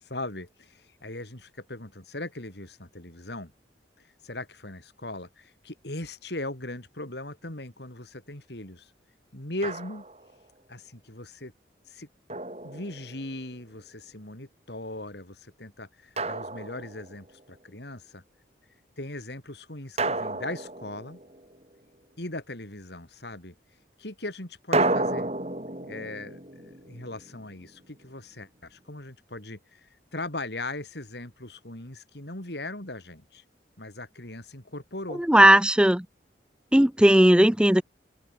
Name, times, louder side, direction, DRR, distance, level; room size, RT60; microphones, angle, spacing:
voice 1, 0.0-3.5 4.0-8.9 9.3-10.0 10.7-11.5 11.9-12.1 12.6-18.2 19.0-21.2 22.2-23.5 24.0-25.3 25.9-33.4 33.8-35.2, left 2 dB, 65° left, 3.9 m, -39 dB
Drum, 9.6-10.3 12.3-13.4 16.2-17.3 20.0-21.6 24.7-27.7, right 2 dB, 35° right, 7.4 m, -31 dB
voice 2, 35.2-36.1 36.7-37.8, right 1 dB, 5° right, 0.6 m, -17 dB
open air
head